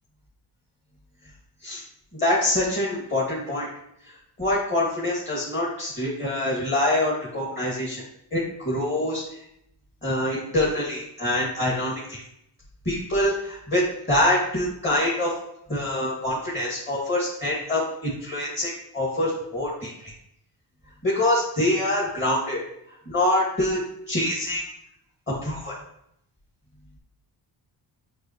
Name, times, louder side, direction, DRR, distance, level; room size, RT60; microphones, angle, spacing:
voice 1, 2.1-3.7 4.4-8.0 8.3-9.2 10.0-12.2 12.9-15.3 15.7-20.1 21.0-22.6 23.1-23.8 24.1-24.6 25.3-25.8, left 1 dB, 25° left, -5 dB, 2.3 m, -25 dB
6.4 x 5.8 x 3.1 m, 0.75 s
cardioid pair, 70°, 45 cm